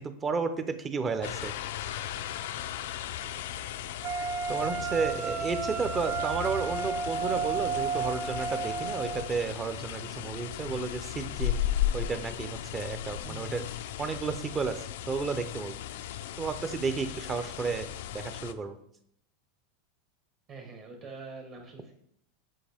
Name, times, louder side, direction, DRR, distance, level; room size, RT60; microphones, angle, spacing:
voice 1, 0.0-1.5 1.8-2.3 4.2-11.7 11.9-13.6 14.0-15.8 16.4-17.9 18.1-18.8, right 5 dB, 20° right, 9 dB, 0.6 m, -32 dB
sound 1, 1.2-18.5, left 11 dB, 75° left, 0.4 m, -36 dB
Wind instrument woodwind instrument, 4.0-9.3, right 6 dB, 55° right, 0.8 m, -32 dB
voice 2, 4.5-5.1 13.2-13.7 20.5-21.9, right 3 dB, 40° right, 0 dB, 1.2 m, -46 dB
7.6 x 4.4 x 3.5 m, 0.70 s
supercardioid pair, 135°, 0 cm